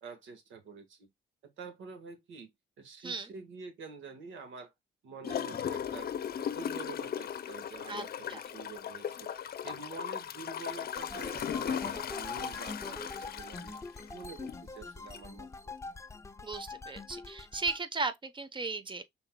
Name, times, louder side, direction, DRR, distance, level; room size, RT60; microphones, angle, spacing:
voice 1, 0.0-1.1 1.4-2.5 2.8-4.7 5.0-9.3 9.6-13.8 14.1-15.8, right 4 dB, 75° right, 1.7 m, -47 dB
voice 2, 3.0-3.3 7.9-8.4 16.4-19.0, right 3 dB, 25° right, 0.9 m, -36 dB
Gurgling / Toilet flush, 5.2-14.6 15.1-15.2, left 9 dB, 50° left, 0.7 m, -37 dB
sound 1, 11.0-17.8, left 3 dB, 15° left, 0.4 m, -44 dB
5.6 x 4.1 x 2.2 m
cardioid pair, 90°, 20 cm